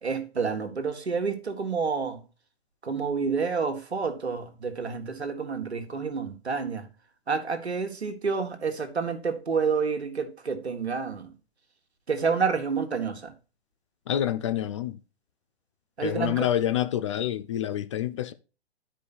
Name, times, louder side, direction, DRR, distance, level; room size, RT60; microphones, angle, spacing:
voice 1, 0.0-2.2 2.8-6.9 7.3-11.3 12.1-13.3 16.0-16.5, right 5 dB, 85° right, 1.5 m, -29 dB
voice 2, 14.1-15.0 16.0-18.3, left 11 dB, 30° left, 0.4 m, -27 dB
10.5 x 5.0 x 4.1 m
figure-of-eight pair, 125°, 32 cm